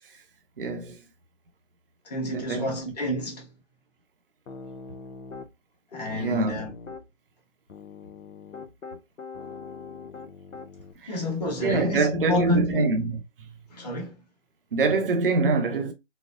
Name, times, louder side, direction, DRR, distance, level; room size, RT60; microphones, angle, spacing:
voice 1, 0.6-1.0 2.2-2.7 6.1-6.6 11.0-11.1 11.6-13.2 14.7-15.9, right 3 dB, 45° right, 0.6 m, -25 dB
voice 2, 2.0-3.5 5.9-6.7 11.1-12.9 13.7-14.1, left 1 dB, 35° left, 1.1 m, -29 dB
Piano, 4.5-5.5 5.9-7.0 7.7-10.9, left 4 dB, 90° left, 0.8 m, -42 dB
4.1 x 2.0 x 2.4 m
figure-of-eight pair, 155°, 37 cm